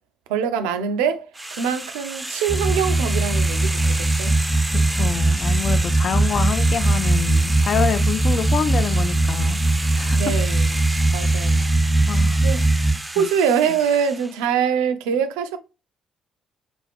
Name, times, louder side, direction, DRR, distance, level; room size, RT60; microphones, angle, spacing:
voice 1, 0.3-4.4 4.8-5.0 10.2-10.6 11.1-11.7 12.4-12.6 13.2-15.6, right 7 dB, 85° right, 0.3 m, -24 dB
sound 1, 1.3-14.4, right 2 dB, 15° right, 0.4 m, -31 dB
sound 2, 2.5-12.9, right 2 dB, 20° left, 0.9 m, -20 dB
voice 2, 4.7-9.6 9.9-10.2 12.1-12.4 13.2-13.3, left 6 dB, 55° left, 0.4 m, -26 dB
2.5 x 2.3 x 3.3 m
hypercardioid pair, 50°, 0 cm